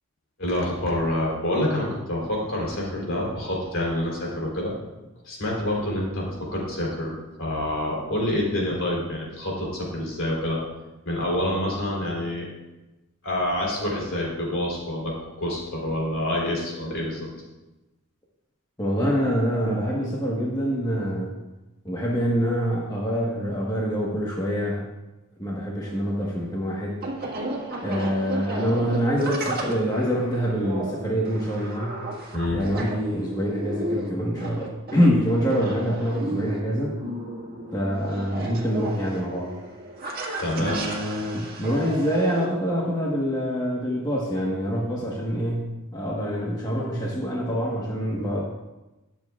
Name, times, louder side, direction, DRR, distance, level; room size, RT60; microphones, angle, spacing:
voice 1, 0.4-4.7 5.2-7.1 7.4-10.6 11.0-12.5 13.2-17.3 32.3-32.6 40.4-40.9, left 1 dB, 60° left, -2 dB, 3.4 m, -27 dB
voice 2, 18.8-21.3 21.8-24.8 25.4-26.9 27.8-32.0 32.5-37.0 37.7-39.6 40.5-48.4, equal, 20° left, -4 dB, 1.2 m, -25 dB
sound 1, 25.8-42.4, right 1 dB, 45° right, 1.7 m, -34 dB
18.5 x 7.2 x 2.4 m, 1.0 s
head